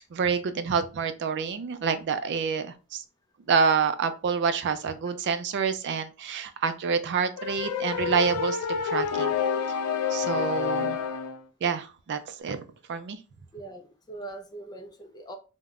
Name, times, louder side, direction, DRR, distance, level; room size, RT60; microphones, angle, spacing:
voice 1, 0.1-3.0 3.5-9.3 10.1-11.0 11.6-12.6 12.9-13.2, right 6 dB, 55° right, 0.3 m, -27 dB
sound 1, 7.4-11.4, left 6 dB, 90° left, 0.3 m, -28 dB
voice 2, 13.5-15.3, right 2 dB, 20° left, 0.4 m, -42 dB
3.5 x 2.1 x 2.4 m
head